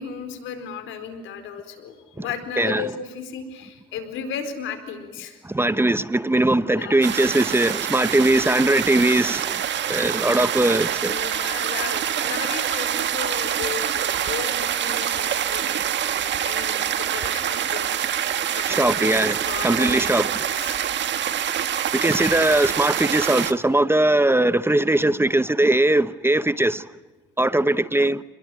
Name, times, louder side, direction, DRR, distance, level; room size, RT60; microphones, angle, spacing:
voice 1, 0.0-5.4 6.7-7.0 11.0-17.9 18.5-20.0 20.4-20.8, left 7 dB, 85° left, 4.5 m, -35 dB
voice 2, 5.4-9.6 9.9-11.1 18.7-20.3 21.9-26.8 27.4-28.2, right 1 dB, 10° right, 0.9 m, -20 dB
sound 1, 7.0-23.5, right 9 dB, 65° right, 1.7 m, -25 dB
28.5 x 21.5 x 9.3 m
cardioid pair, 90°, 20 cm